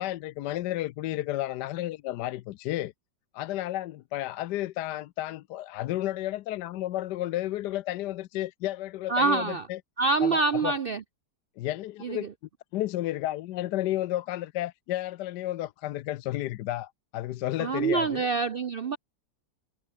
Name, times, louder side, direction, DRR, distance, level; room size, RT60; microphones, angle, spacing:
voice 1, 0.0-2.9 3.3-9.8 10.2-10.7 11.6-12.3 12.7-18.3, left 14 dB, 75° left, 1.2 m, -32 dB
voice 2, 9.1-9.7 10.0-11.0 12.0-12.3 17.6-19.0, right 4 dB, 70° right, 0.5 m, -26 dB
omnidirectional pair, 1.9 m